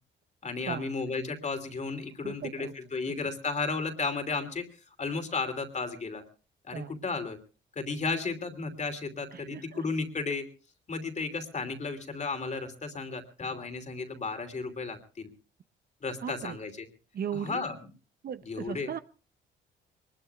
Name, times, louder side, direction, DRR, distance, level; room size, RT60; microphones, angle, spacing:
voice 1, 0.4-4.6 5.0-6.2 6.6-7.4 7.7-10.4 10.9-15.3 16.0-16.9 17.3-17.7 18.4-18.9, left 4 dB, 35° left, 2.9 m, -34 dB
voice 2, 2.2-2.7 6.7-6.9 9.3-9.8 16.2-16.6 17.1-17.6 18.2-19.0, right 8 dB, 50° right, 0.7 m, -37 dB
23.0 x 21.0 x 2.4 m
cardioid pair, 90°, 20 cm